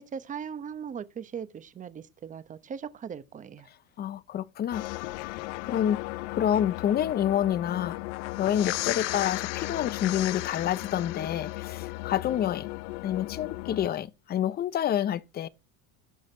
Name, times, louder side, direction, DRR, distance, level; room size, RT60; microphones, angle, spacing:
voice 1, 0.0-3.7, right 7 dB, 20° right, 1.0 m, -39 dB
voice 2, 4.0-4.8 5.2-5.4 5.6-6.0 6.3-8.0 8.4-12.7 13.0-15.5, left 10 dB, 25° left, 0.6 m, -28 dB
sound 1, 4.7-13.9, left 22 dB, 75° left, 0.6 m, -35 dB
17.0 x 6.4 x 4.4 m
cardioid pair, 155°, 37 cm